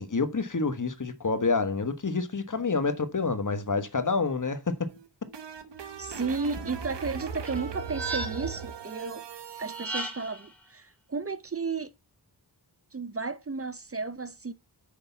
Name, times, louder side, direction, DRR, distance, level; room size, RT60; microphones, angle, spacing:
voice 1, 0.0-4.9, left 4 dB, 45° left, 1.3 m, -28 dB
sound 1, 4.9-9.9, right 6 dB, 85° right, 1.0 m, -38 dB
voice 2, 6.0-9.2 9.6-11.9 12.9-14.5, right 4 dB, 35° right, 0.7 m, -33 dB
sound 2, 7.4-8.7 9.6-10.5, right 3 dB, 5° left, 3.1 m, -36 dB
6.5 x 5.3 x 7.0 m
cardioid pair, 40°, 41 cm